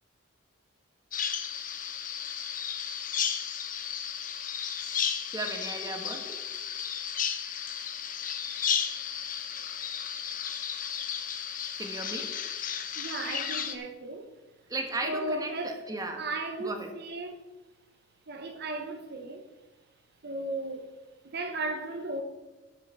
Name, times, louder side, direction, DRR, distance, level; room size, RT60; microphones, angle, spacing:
Bird vocalization bird call bird song, 1.1-13.8, left 8 dB, 40° left, 1.0 m, -34 dB
voice 1, 5.3-6.4 11.8-12.4 14.7-16.3 16.6-16.9, right 2 dB, 20° right, 1.3 m, -35 dB
voice 2, 13.0-14.3 15.0-15.8 16.2-17.4 18.3-19.5 20.2-20.9 21.3-22.2, right 2 dB, 50° right, 1.0 m, -35 dB
12.0 x 5.8 x 6.9 m
head